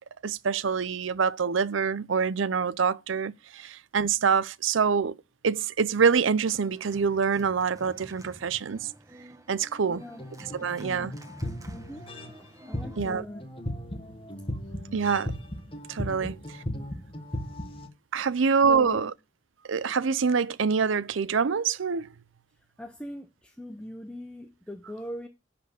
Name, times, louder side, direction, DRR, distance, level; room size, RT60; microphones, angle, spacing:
voice 1, 0.2-5.1 5.4-8.9 9.5-10.0 10.5-11.1 13.0-13.2 14.9-15.3 15.9-16.4 18.1-19.1 19.7-22.1, right 6 dB, 85° right, 0.6 m, -25 dB
Organ, 6.4-13.0, right 1 dB, 15° right, 1.3 m, -50 dB
voice 2, 9.9-10.2 10.6-11.2 11.7-12.0 12.7-13.5 14.7-14.8 16.2-16.3 16.7-17.0 18.7-19.1 22.8-25.3, equal, 5° left, 0.7 m, -41 dB
sound 1, 10.0-12.5 12.7-17.9, left 1 dB, 25° left, 1.5 m, -37 dB
11.5 x 4.3 x 7.0 m
head